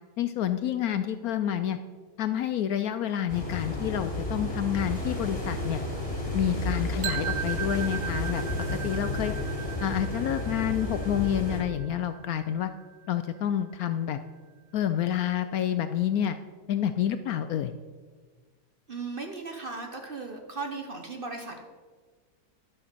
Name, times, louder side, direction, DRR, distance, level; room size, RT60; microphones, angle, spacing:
voice 1, 0.2-1.8 2.2-5.8 6.3-8.4 8.8-9.3 9.8-12.7 13.1-14.2 14.7-16.4 16.7-17.7, left 10 dB, 70° left, 10 dB, 0.9 m, -28 dB
sound 1, 3.3-11.6, left 1 dB, 20° left, 2.9 m, -32 dB
sound 2, 7.0-13.0, right 10 dB, 85° right, 1.2 m, -38 dB
voice 2, 18.9-21.6, right 3 dB, 40° right, 3 dB, 0.9 m, -37 dB
11.5 x 6.2 x 6.6 m, 1.5 s
omnidirectional pair, 1.8 m